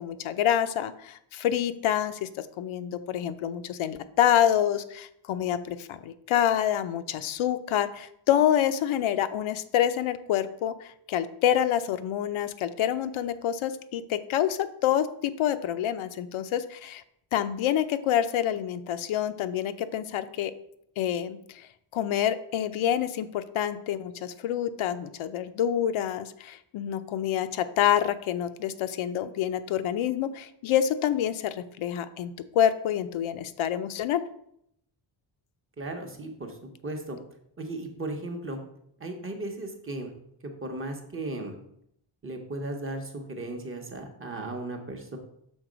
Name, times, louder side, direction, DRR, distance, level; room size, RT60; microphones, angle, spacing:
voice 1, 0.0-17.0 17.3-20.5 21.0-34.2, left 10 dB, 75° left, 11 dB, 0.6 m, -27 dB
voice 2, 35.8-37.2 37.6-38.6 39.0-40.1 40.6-41.5 42.2-45.2, right 2 dB, 25° right, 3 dB, 0.8 m, -36 dB
6.3 x 3.7 x 5.0 m, 0.72 s
wide cardioid pair, 170°, 49 cm